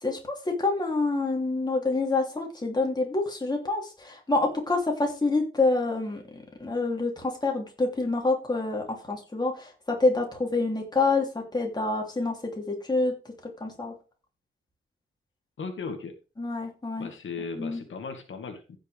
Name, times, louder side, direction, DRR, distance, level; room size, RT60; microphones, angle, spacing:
voice 1, 0.0-13.1 13.6-13.9 16.4-17.1 17.5-17.8, left 3 dB, 20° left, 1 dB, 3.1 m, -27 dB
voice 2, 15.6-16.1 17.0-18.8, left 4 dB, 65° left, 5 dB, 1.9 m, -37 dB
15.5 x 6.4 x 3.5 m, 0.32 s
wide cardioid pair, 150°, 21 cm